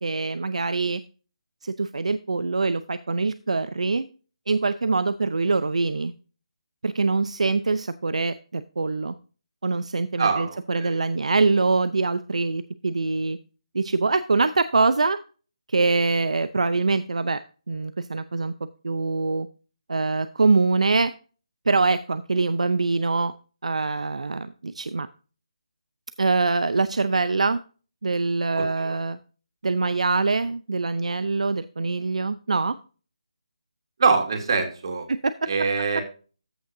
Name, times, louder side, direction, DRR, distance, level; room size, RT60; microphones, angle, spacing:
voice 1, 0.0-1.0 1.6-4.1 4.5-6.1 6.8-9.1 9.6-13.4 13.7-15.2 15.7-17.4 17.7-18.5 18.8-19.5 19.9-21.1 21.7-23.3 23.6-25.1 26.2-27.6 28.0-29.2 29.6-32.8 35.1-35.3, right 3 dB, 80° right, 13 dB, 0.6 m, -24 dB
voice 2, 10.2-11.0 28.6-29.0 34.0-35.1 35.5-36.0, right 5 dB, 45° right, 4 dB, 2.7 m, -24 dB
14.0 x 6.5 x 2.7 m, 0.36 s
figure-of-eight pair, 165°, 4 cm